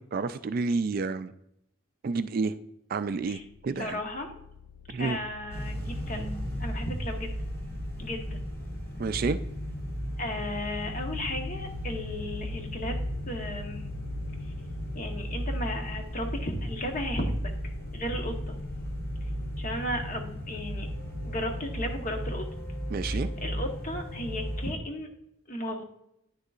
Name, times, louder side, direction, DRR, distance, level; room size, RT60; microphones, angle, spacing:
voice 1, 0.0-1.3 2.0-2.5 2.9-4.0 4.9-5.2 9.0-9.4 22.9-23.3, right 4 dB, 45° right, 12 dB, 0.3 m, -29 dB
sound 1, 3.3-22.0, left 7 dB, 70° left, 0.4 m, -46 dB
voice 2, 3.8-4.3 5.0-6.3 6.6-7.3 8.0-8.4 10.2-13.0 13.3-13.8 14.9-17.4 17.6-18.6 19.6-20.9 21.2-22.5 23.1-25.1 25.5-25.8, left 1 dB, 40° left, 3 dB, 1.1 m, -35 dB
sound 2, 5.5-24.7, equal, 15° left, 1.7 m, -35 dB
9.8 x 6.6 x 2.4 m, 0.78 s
head